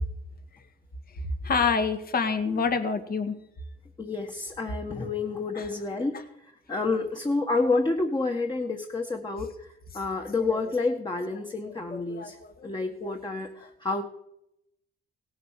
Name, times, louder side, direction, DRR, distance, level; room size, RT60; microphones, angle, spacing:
voice 1, 1.4-3.4 5.5-5.7 10.2-10.3 11.6-12.5 13.0-13.1, left 5 dB, 50° left, 8 dB, 2.0 m, -27 dB
voice 2, 4.0-6.2 6.7-9.7 9.9-12.4 12.6-14.0, left 3 dB, 20° left, 3 dB, 1.6 m, -29 dB
17.5 x 8.0 x 6.7 m, 0.78 s
cardioid pair, 90°, 20 cm